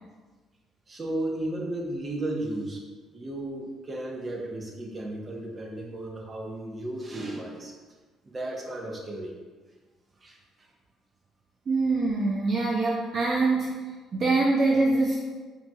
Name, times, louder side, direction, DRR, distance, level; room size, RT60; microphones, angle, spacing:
voice 1, 0.9-2.8 3.1-7.7 8.2-9.3 10.2-10.4, right 1 dB, 35° right, 0 dB, 1.0 m, -34 dB
voice 2, 11.7-13.8 14.1-15.1, right 3 dB, 50° right, -3 dB, 0.6 m, -24 dB
5.5 x 2.9 x 2.3 m, 1.4 s
hypercardioid pair, 55°, 0 cm